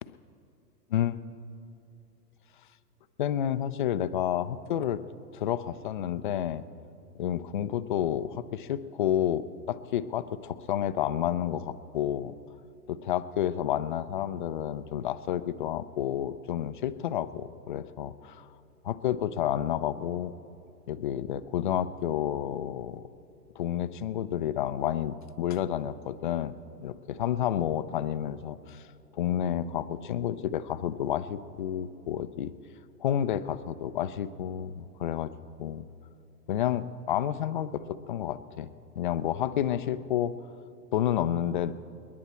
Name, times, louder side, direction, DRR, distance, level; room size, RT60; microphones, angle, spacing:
voice 1, 0.9-1.2 3.2-5.0 5.3-6.6 7.2-12.3 12.9-18.5 18.8-20.3 20.9-23.1 23.6-26.5 26.8-28.8 29.2-32.5 33.0-35.3 35.6-35.8 36.5-38.7 39.0-40.3 40.9-41.7, left 10 dB, 35° left, 13 dB, 0.4 m, -30 dB
28.5 x 10.5 x 4.3 m, 2.7 s
hypercardioid pair, 120°, 49 cm